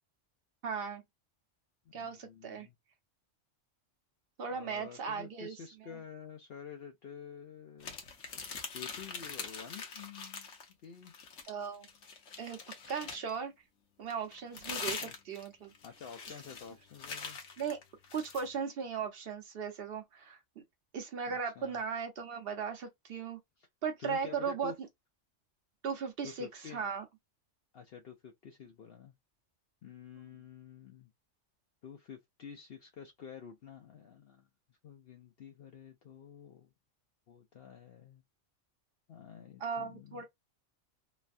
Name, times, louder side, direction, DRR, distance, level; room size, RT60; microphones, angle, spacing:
voice 1, 0.6-1.0 1.9-2.7 4.4-5.5 5.8-6.0 11.5-11.9 12.4-12.6 12.9-13.5 14.0-15.7 17.6-17.8 18.1-20.4 20.9-23.4 23.8-24.7 25.8-27.0 39.6-40.2, right 6 dB, 55° right, 1.0 m, -37 dB
voice 2, 1.9-2.7 4.5-8.0 8.7-10.5 10.8-11.1 15.0-15.1 15.8-17.4 21.3-21.8 23.6-23.7 24.0-24.7 26.2-26.8 27.7-29.1 29.8-31.1 31.8-36.7 37.3-38.2 39.1-40.2, left 7 dB, 60° left, 0.8 m, -49 dB
sound 1, 7.8-10.7 11.0-13.4 14.1-18.5, left 5 dB, 80° left, 1.2 m, -43 dB
3.2 x 2.1 x 2.5 m
omnidirectional pair, 1.2 m